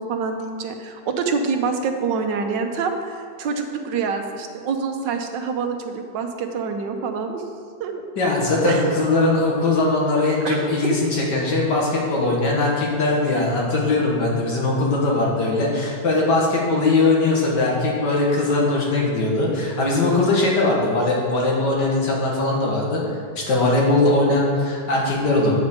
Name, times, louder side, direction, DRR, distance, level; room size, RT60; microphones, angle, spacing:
voice 1, 0.0-7.4 7.8-8.0 8.6-9.0 10.4-10.6 10.8-11.0, right 5 dB, 90° right, 5 dB, 1.5 m, -26 dB
voice 2, 8.2-23.0 23.4-25.6, left 2 dB, 75° left, -3 dB, 2.4 m, -20 dB
9.2 x 5.2 x 6.8 m, 2.2 s
omnidirectional pair, 1.9 m